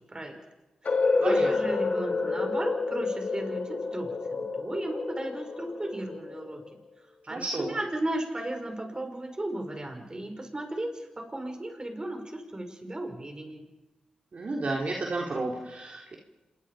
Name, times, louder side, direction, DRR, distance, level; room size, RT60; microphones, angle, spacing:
sound 1, 0.8-6.7, left 3 dB, 60° left, 3.1 m, -29 dB
voice 1, 1.2-6.6 7.3-13.7, right 1 dB, 30° right, 4 dB, 6.2 m, -35 dB
voice 2, 7.3-7.7 14.3-16.1, right 2 dB, 55° right, -2 dB, 3.7 m, -31 dB
27.5 x 22.5 x 5.1 m, 1.1 s
supercardioid pair, 45°, 3 cm